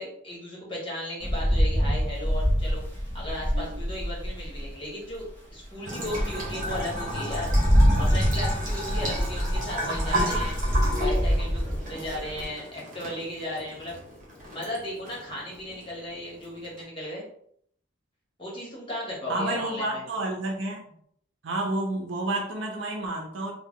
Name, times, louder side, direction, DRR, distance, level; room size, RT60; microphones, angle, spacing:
voice 1, 0.0-2.8 3.1-5.2 5.5-7.5 8.0-10.5 11.0-13.9 14.5-17.3 18.4-20.0, left 1 dB, 25° left, -5 dB, 1.4 m, -36 dB
Rain, 1.2-4.7 5.3-5.4 5.8-12.4, equal, 10° left, 1.0 m, -25 dB
Bathtub (filling or washing) / Trickle dribble, 5.9-16.8, equal, 40° right, 1.2 m, -34 dB
voice 2, 19.3-20.8 21.4-23.5, right 2 dB, 65° right, 2 dB, 0.7 m, -30 dB
3.4 x 2.3 x 3.6 m, 0.65 s
head